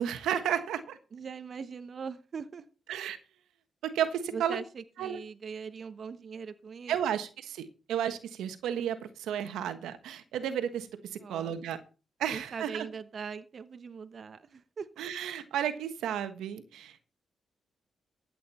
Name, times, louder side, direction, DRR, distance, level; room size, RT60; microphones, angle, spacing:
voice 1, 0.0-1.0 2.9-3.2 3.8-4.6 5.0-5.2 6.9-11.8 12.2-12.9 15.0-17.0, right 9 dB, 90° right, 1.4 m, -33 dB
voice 2, 1.1-2.7 4.3-6.9 11.2-11.5 12.3-14.9, right 6 dB, 55° right, 1.0 m, -41 dB
14.5 x 8.9 x 4.3 m
cardioid pair, 65°, 0 cm